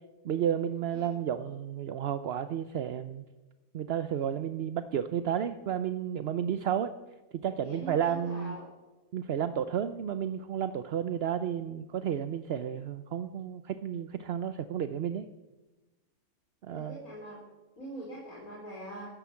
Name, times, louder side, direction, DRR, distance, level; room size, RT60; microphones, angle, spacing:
voice 1, 0.2-3.3 3.7-6.9 7.4-8.6 9.1-15.2 16.6-17.0, right 9 dB, 55° right, 11 dB, 0.7 m, -32 dB
voice 2, 7.6-8.7 16.7-17.4 17.8-19.1, right 1 dB, 70° left, -5 dB, 5.2 m, -43 dB
14.0 x 14.0 x 7.1 m, 1.1 s
omnidirectional pair, 1.6 m